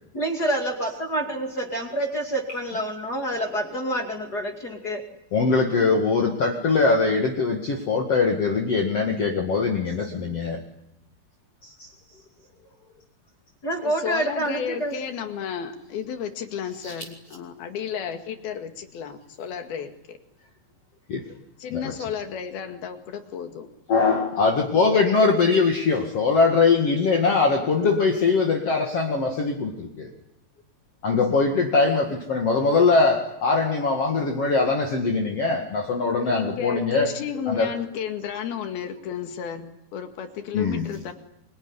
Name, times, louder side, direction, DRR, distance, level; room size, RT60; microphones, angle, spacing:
voice 1, 0.1-5.0 13.6-14.9, right 1 dB, 30° left, 2 dB, 2.6 m, -27 dB
voice 2, 5.3-10.6 16.8-16.9 21.1-21.2 21.7-21.9 23.9-30.1 31.0-37.2 37.5-37.7 40.5-41.0, left 4 dB, 45° left, 1 dB, 2.8 m, -22 dB
voice 3, 13.8-20.2 21.6-23.7 36.2-41.1, left 8 dB, 90° left, 6 dB, 4.0 m, -33 dB
25.0 x 23.5 x 9.9 m, 0.84 s
omnidirectional pair, 4.2 m